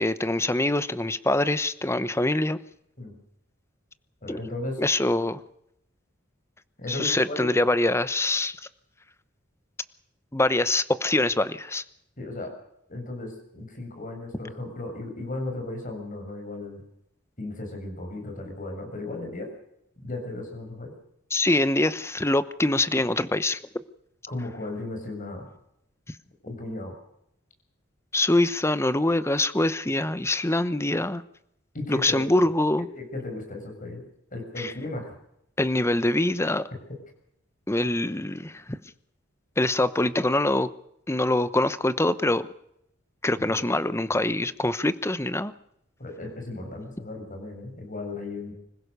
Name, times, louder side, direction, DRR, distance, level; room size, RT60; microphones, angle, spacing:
voice 1, 0.0-2.6 4.3-4.5 4.8-5.4 6.9-8.6 10.3-11.8 21.3-23.6 28.1-31.2 31.9-32.9 34.6-34.7 35.6-36.6 37.7-38.8 39.6-40.7 41.1-42.5 43.2-45.5, left 2 dB, 15° left, 14 dB, 0.9 m, -24 dB
voice 2, 4.2-4.8 6.8-7.5 12.2-12.5 12.9-16.8 17.4-19.5 20.0-20.9 24.3-25.5 26.4-26.9 31.7-32.3 33.0-34.1 34.3-35.1 43.5-43.6 46.0-48.5, left 2 dB, 40° left, 4 dB, 7.0 m, -35 dB
25.5 x 16.5 x 6.8 m, 0.76 s
head